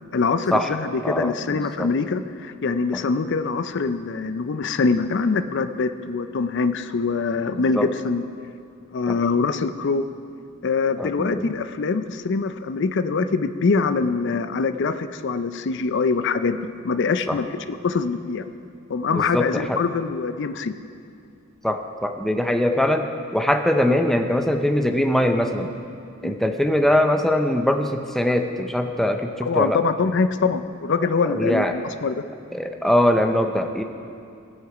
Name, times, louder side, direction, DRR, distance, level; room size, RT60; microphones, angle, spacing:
voice 1, 0.1-8.2 8.9-10.0 10.6-18.4 18.9-20.7 26.2-26.3 29.5-31.7 32.0-32.2, left 4 dB, 55° left, 10 dB, 0.4 m, -24 dB
voice 2, 1.0-1.9 7.7-7.9 9.1-9.2 11.0-11.5 17.3-17.4 19.1-19.8 21.6-25.7 26.2-29.8 31.3-31.8 32.5-33.8, left 1 dB, ahead, 5 dB, 0.5 m, -22 dB
18.5 x 6.5 x 4.9 m, 2.4 s
head